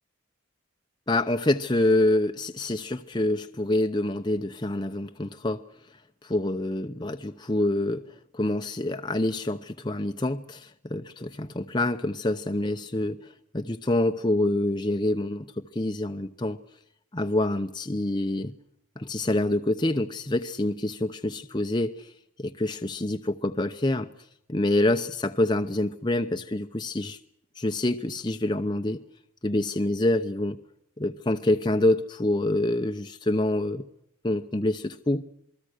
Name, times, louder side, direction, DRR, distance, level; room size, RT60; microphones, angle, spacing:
voice 1, 1.1-5.6 6.2-8.0 8.3-16.6 17.1-18.5 19.0-22.1 22.4-24.1 24.5-27.2 27.6-29.0 29.4-30.6 31.0-33.9 34.2-35.2, left 1 dB, 20° left, 0.8 m, -26 dB
27.5 x 21.0 x 6.5 m
head